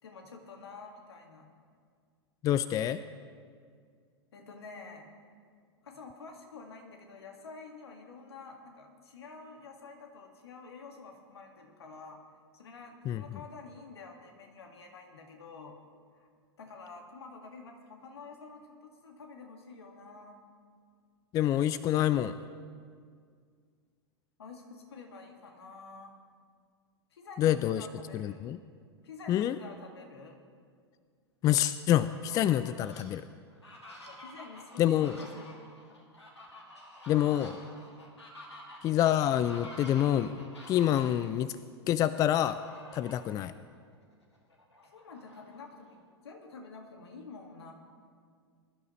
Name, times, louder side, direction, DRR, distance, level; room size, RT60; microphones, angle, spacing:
voice 1, 0.0-1.5 4.3-5.1 5.8-12.2 12.5-15.8 16.1-16.3 16.6-20.4 24.4-26.2 27.1-28.6 29.0-30.4 34.1-35.5 37.1-37.5 44.8-47.7, left 4 dB, 70° left, 3 dB, 2.0 m, -49 dB
voice 2, 2.4-3.0 13.1-13.2 21.3-22.4 27.4-27.9 28.1-28.6 29.3-29.6 31.4-33.2 34.8-35.2 37.1-37.5 38.8-41.6 41.9-42.6 42.9-43.5, left 11 dB, 25° left, 14 dB, 0.3 m, -27 dB
Fowl, 32.1-33.0 33.5-41.3 42.3-43.3 43.8-43.9 44.2-46.0, left 1 dB, 85° left, 2.4 m, -50 dB
21.5 x 12.0 x 3.2 m, 2.1 s
figure-of-eight pair, 95°, 14 cm